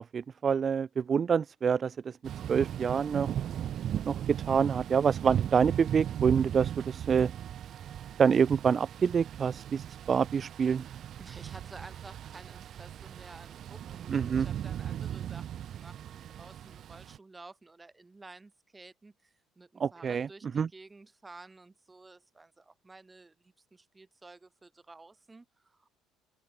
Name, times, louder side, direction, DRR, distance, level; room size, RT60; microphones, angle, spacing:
voice 1, 0.0-2.2 2.5-3.3 4.0-7.3 8.2-10.8 14.1-14.5 19.8-20.3 20.5-20.7, right 6 dB, 30° right, 1.0 m, -27 dB
Thunder / Rain, 2.2-17.2, right 10 dB, 50° right, 1.5 m, -37 dB
voice 2, 11.2-26.1, right 3 dB, 15° right, 5.8 m, -52 dB
cardioid pair, 125°, 0 cm